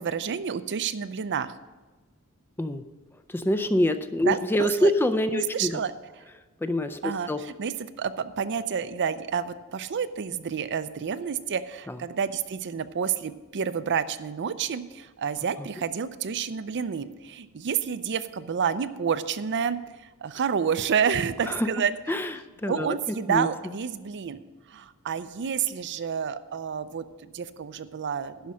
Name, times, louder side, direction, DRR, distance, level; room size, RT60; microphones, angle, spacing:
voice 1, 0.0-1.5 4.2-4.9 5.3-5.9 7.0-19.8 20.2-21.9 22.7-24.4 24.7-28.5, right 7 dB, 55° right, 13 dB, 0.5 m, -29 dB
voice 2, 3.3-5.8 6.6-7.4 11.9-12.0 21.5-21.7 22.1-23.0 23.3-23.5, left 1 dB, 10° left, 9 dB, 0.4 m, -26 dB
11.5 x 5.3 x 7.4 m, 1.2 s
head